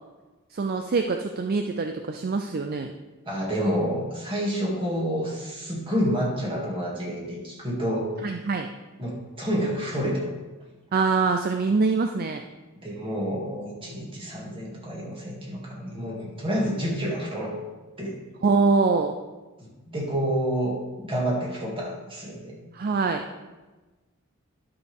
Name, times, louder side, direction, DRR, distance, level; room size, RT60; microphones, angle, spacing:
voice 1, 0.5-2.9 8.2-8.7 10.9-12.4 18.4-19.1 22.7-23.2, right 4 dB, 45° right, 5 dB, 0.4 m, -24 dB
voice 2, 3.3-8.1 9.0-10.2 12.8-17.5 18.0-18.2 19.6-22.5, equal, 25° right, -3 dB, 2.3 m, -29 dB
11.5 x 6.3 x 3.5 m, 1.2 s
head